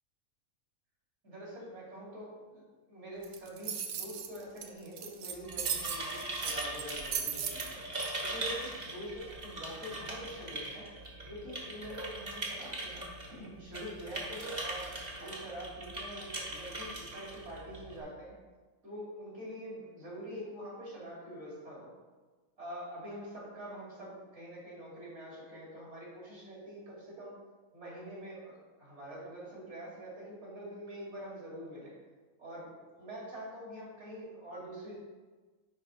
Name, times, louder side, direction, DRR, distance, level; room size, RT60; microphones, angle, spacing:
voice 1, 1.2-7.8 8.2-10.9 11.2-18.3 18.8-21.9 22.6-27.3 27.7-28.5 28.8-31.9 32.4-35.0, equal, 50° right, -5 dB, 2.9 m, -45 dB
sound 1, 3.2-8.1, right 7 dB, 85° right, 1.2 m, -37 dB
sound 2, 5.3-18.0, right 1 dB, 30° right, 1.5 m, -41 dB
9.9 x 3.5 x 5.0 m, 1.3 s
omnidirectional pair, 1.5 m